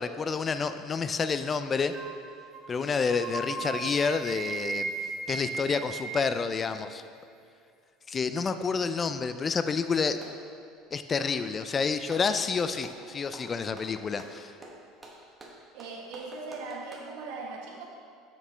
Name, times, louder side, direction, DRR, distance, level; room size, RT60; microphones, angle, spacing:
voice 1, 0.0-1.9 2.7-4.9 5.3-7.0 8.1-10.2 10.9-14.5, left 5 dB, 25° left, 10 dB, 0.3 m, -29 dB
sound 1, 1.9-2.2 2.5-2.7 3.0-6.4, right 4 dB, 40° right, 1.4 m, -36 dB
Clapping, 10.2-10.5 11.1-12.3 12.8-13.1 13.3-17.1, right 2 dB, 10° right, 1.2 m, -49 dB
voice 2, 15.7-17.8, right 3 dB, 75° right, 0 dB, 1.3 m, -39 dB
8.3 x 7.1 x 3.3 m, 2.3 s
cardioid pair, 135°, 0 cm